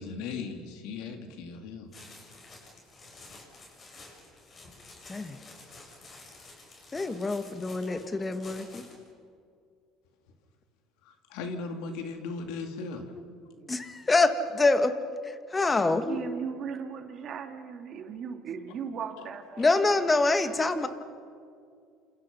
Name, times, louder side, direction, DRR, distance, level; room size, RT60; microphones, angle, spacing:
voice 1, 0.0-1.9 7.9-8.1 11.0-13.1, left 4 dB, 80° left, 5 dB, 3.1 m, -38 dB
sound 1, 1.9-9.1, left 2 dB, 35° left, 7.9 m, -51 dB
voice 2, 5.1-5.4 6.9-8.8 13.1-13.2 13.6-15.0 15.2-16.2 19.6-20.9, left 3 dB, 20° left, 9 dB, 1.8 m, -26 dB
voice 3, 15.8-20.1 20.4-20.8, right 6 dB, 50° right, 4 dB, 3.3 m, -38 dB
29.0 x 28.0 x 5.6 m, 2.3 s
supercardioid pair, 100°, 0 cm